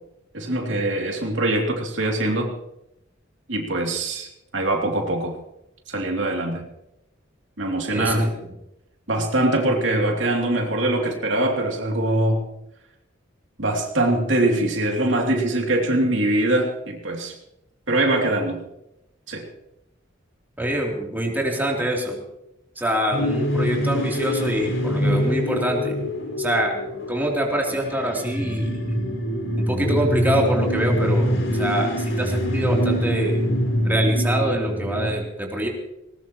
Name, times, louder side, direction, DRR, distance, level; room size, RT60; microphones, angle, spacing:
voice 1, 0.3-2.5 3.5-5.3 5.9-6.6 7.6-8.3 9.1-12.4 13.6-17.4 17.9-18.6 19.3-19.5, right 1 dB, 80° right, 1 dB, 2.9 m, -23 dB
voice 2, 7.9-8.4 20.6-22.2 22.7-26.0 26.4-26.8 27.1-28.8 29.7-33.4 33.8-35.7, right 1 dB, 10° right, -1 dB, 3.3 m, -25 dB
sound 1, 23.1-35.1, equal, 85° left, 4.4 m, -24 dB
20.0 x 20.0 x 3.1 m, 0.85 s
head